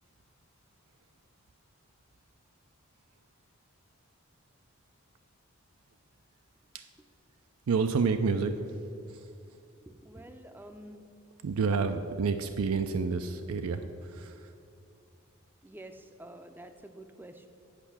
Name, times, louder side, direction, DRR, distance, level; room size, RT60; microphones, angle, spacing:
voice 1, 7.7-8.5 9.1-9.3 11.4-14.5, right 5 dB, 85° right, 7 dB, 0.4 m, -29 dB
voice 2, 9.9-11.0 15.6-17.5, right 1 dB, 10° right, 7 dB, 0.4 m, -48 dB
8.2 x 5.4 x 7.1 m, 2.7 s
head